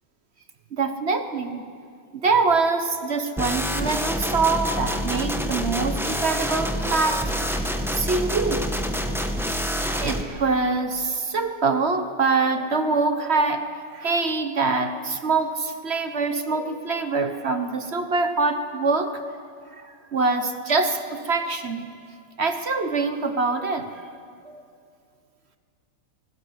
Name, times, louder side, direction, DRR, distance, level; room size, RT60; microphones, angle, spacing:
voice 1, 0.7-1.6 2.1-8.7 9.9-13.7 13.9-19.2 19.7-21.9 22.4-24.0 24.4-24.6, right 4 dB, 40° right, 8 dB, 1.0 m, -24 dB
sound 1, 3.4-10.2, equal, ahead, 0.9 m, -27 dB
25.5 x 18.5 x 7.9 m, 2.3 s
omnidirectional pair, 2.3 m